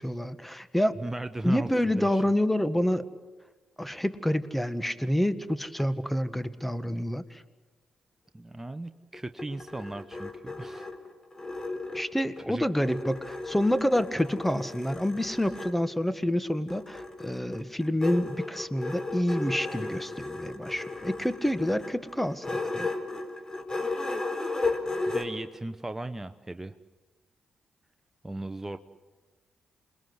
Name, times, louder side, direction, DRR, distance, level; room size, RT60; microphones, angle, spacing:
voice 1, 0.0-1.0 1.4-3.1 3.8-7.4 11.9-22.9, left 1 dB, 5° left, 13 dB, 1.7 m, -28 dB
voice 2, 0.9-2.2 8.3-10.9 12.5-12.6 25.0-26.7 28.2-28.8, right 2 dB, 15° right, 9 dB, 1.0 m, -37 dB
sound 1, 9.1-12.4 12.8-15.8 16.7-25.2, left 3 dB, 30° left, 4.6 m, -35 dB
28.0 x 21.0 x 8.1 m, 1.2 s
hypercardioid pair, 45°, 2 cm